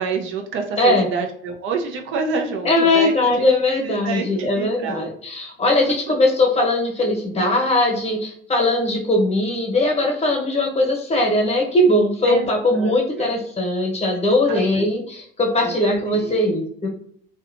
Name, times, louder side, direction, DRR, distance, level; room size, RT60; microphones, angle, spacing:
voice 1, 0.0-3.5 3.8-5.1 12.3-13.3 14.5-14.8 15.6-16.4, right 5 dB, 85° right, 3 dB, 0.5 m, -28 dB
voice 2, 2.6-16.9, left 1 dB, 30° left, 0 dB, 0.8 m, -20 dB
2.7 x 2.2 x 2.5 m, 0.64 s
cardioid pair, 90°, 20 cm